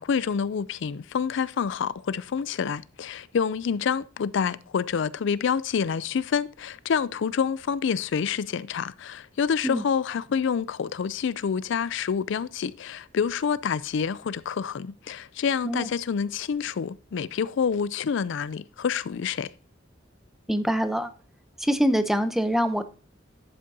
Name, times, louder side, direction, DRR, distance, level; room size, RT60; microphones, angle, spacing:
voice 1, 0.0-19.5, left 6 dB, 65° left, 0.4 m, -27 dB
voice 2, 20.5-21.1 21.6-22.8, equal, ahead, 0.7 m, -24 dB
11.0 x 7.8 x 2.8 m
head